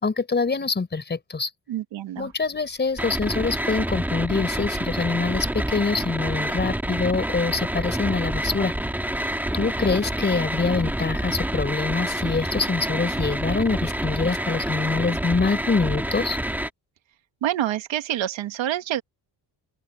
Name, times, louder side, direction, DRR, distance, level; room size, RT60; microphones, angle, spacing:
voice 1, 0.0-1.5 2.2-8.7 9.5-16.4, left 4 dB, 25° left, 4.4 m, -25 dB
voice 2, 1.7-2.3 17.4-19.0, right 12 dB, 85° right, 2.1 m, -27 dB
sound 1, 3.0-16.7, right 1 dB, 5° right, 2.2 m, -28 dB
open air
cardioid pair, 155°, 45 cm